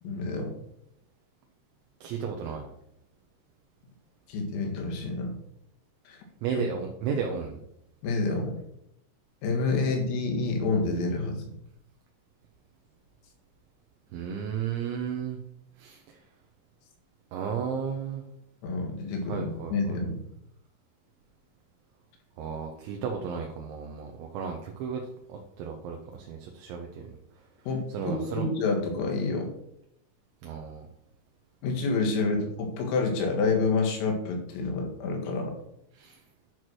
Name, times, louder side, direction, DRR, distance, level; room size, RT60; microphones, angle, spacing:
voice 1, 0.0-0.5 4.3-5.3 6.1-6.2 8.0-8.6 9.4-11.5 18.6-20.2 27.7-29.5 31.6-35.6, left 3 dB, 85° left, 1 dB, 4.5 m, -28 dB
voice 2, 2.0-2.7 6.4-7.6 14.1-15.4 15.8-16.2 17.3-18.3 19.3-20.0 22.4-25.0 25.3-27.0 27.9-28.5 30.4-30.9 35.9-36.2, right 6 dB, 75° right, 2 dB, 3.0 m, -34 dB
11.0 x 4.6 x 6.2 m, 0.77 s
omnidirectional pair, 5.8 m